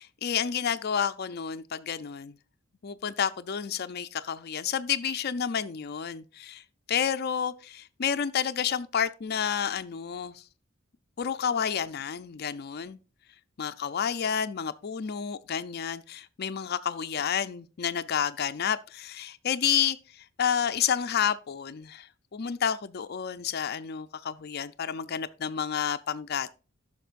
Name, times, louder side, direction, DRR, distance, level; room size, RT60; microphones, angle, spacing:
voice 1, 0.0-2.3 2.8-6.6 6.9-10.4 11.2-13.0 13.6-26.5, left 8 dB, 50° left, 0.5 m, -30 dB
13.5 x 5.9 x 2.5 m
head